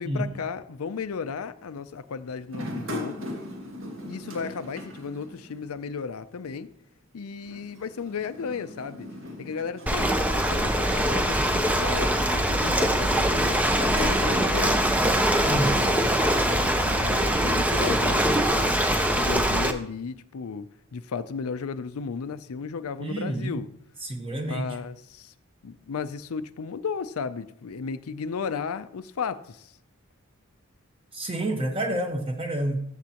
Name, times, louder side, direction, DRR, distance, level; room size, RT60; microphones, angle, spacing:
voice 1, 0.0-3.3 4.1-6.7 7.1-9.1 9.4-14.9 15.4-23.7 24.4-25.3 25.6-29.7, left 5 dB, 80° left, 0.5 m, -35 dB
sound 1, 2.5-5.9 6.1-6.2 7.4-11.6 12.2-12.6 13.5-16.8, left 1 dB, 65° right, 2.0 m, -39 dB
Ocean, 9.9-19.7, right 1 dB, 5° right, 0.5 m, -23 dB
voice 2, 15.5-15.9 16.6-16.8 23.0-23.6 24.0-24.7 31.1-32.8, right 1 dB, 25° right, 1.1 m, -29 dB
14.0 x 7.1 x 2.9 m
head